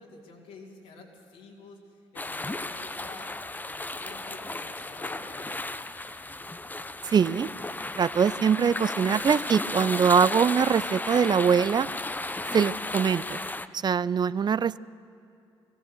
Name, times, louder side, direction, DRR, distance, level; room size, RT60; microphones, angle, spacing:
voice 1, 0.0-1.8 2.1-3.3 3.6-5.6, left 3 dB, 65° left, -3 dB, 3.2 m, -49 dB
sound 1, 2.2-13.7, left 2 dB, 15° left, 0.9 m, -34 dB
voice 2, 7.0-7.5 7.9-11.9 12.5-13.4 13.7-14.8, right 7 dB, 30° right, 19 dB, 0.5 m, -23 dB
23.5 x 17.0 x 6.5 m, 2.6 s
figure-of-eight pair, 45°, 14 cm